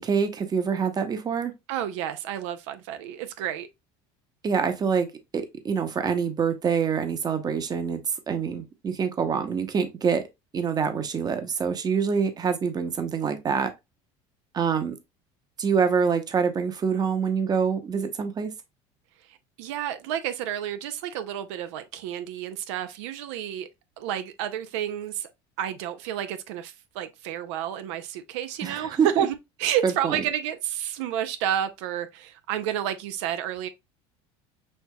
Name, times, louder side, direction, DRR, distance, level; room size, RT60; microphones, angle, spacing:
voice 1, 0.0-1.5 4.4-5.1 5.3-10.2 10.5-13.7 14.5-14.9 15.6-18.5 28.6-29.2 29.8-30.2, right 6 dB, 25° right, 0.8 m, -26 dB
voice 2, 1.7-3.7 19.6-23.7 24.0-25.3 25.6-33.7, right 10 dB, 85° right, 0.5 m, -30 dB
6.3 x 2.8 x 2.2 m
supercardioid pair, 115°, 14 cm